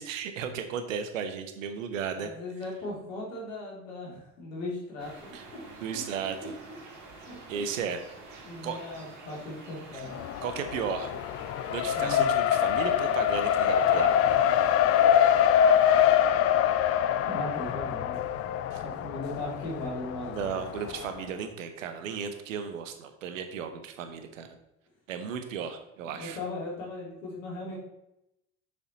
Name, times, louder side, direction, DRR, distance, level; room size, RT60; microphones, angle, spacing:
voice 1, 0.0-2.3 5.3-5.4 5.8-6.5 7.5-8.0 8.3-8.8 9.9-10.0 10.4-11.1 11.7-14.2 18.7-18.8 20.3-24.6 25.1-26.4, right 7 dB, 70° right, 8 dB, 1.1 m, -35 dB
voice 2, 2.2-5.6 7.3-7.4 8.4-10.1 11.9-12.2 17.2-18.2 18.8-20.5 26.0-27.8, left 2 dB, 70° left, -4 dB, 3.4 m, -38 dB
sound 1, 5.0-16.1, right 3 dB, 45° right, 3.1 m, -48 dB
Race car auto racing, 10.1-21.1, left 10 dB, 35° left, 0.6 m, -25 dB
6.9 x 6.9 x 4.1 m, 0.85 s
figure-of-eight pair, 60°, 40 cm